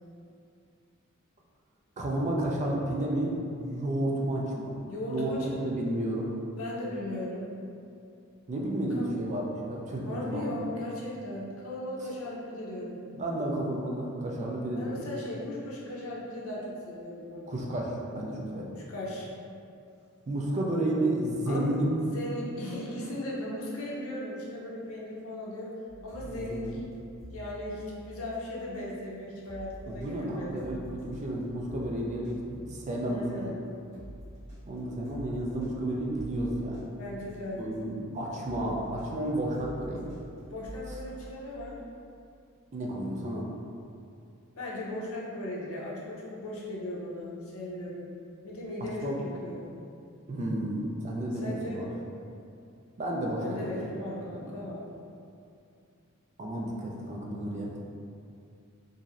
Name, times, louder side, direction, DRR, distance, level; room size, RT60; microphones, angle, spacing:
voice 1, 2.0-4.8 5.1-6.3 8.5-10.6 13.2-15.0 17.5-18.7 20.3-21.9 26.2-26.8 29.9-33.5 34.7-36.8 37.6-40.1 42.7-43.5 49.0-49.2 50.3-51.9 53.0-53.9 54.3-54.5 56.4-57.7, right 1 dB, 35° right, -2 dB, 0.4 m, -32 dB
voice 2, 4.9-5.7 6.6-7.5 8.9-9.1 10.0-13.0 14.7-17.5 18.7-19.3 21.5-25.7 26.0-26.7 27.3-30.7 33.0-33.6 37.0-37.6 40.5-41.8 44.5-48.1 48.4-49.7 51.3-51.8 53.4-54.9, left 1 dB, 70° left, -5 dB, 0.6 m, -37 dB
sound 1, 25.9-37.9 38.4-41.6, equal, 30° left, 1.3 m, -48 dB
3.0 x 2.6 x 2.5 m, 2.5 s
head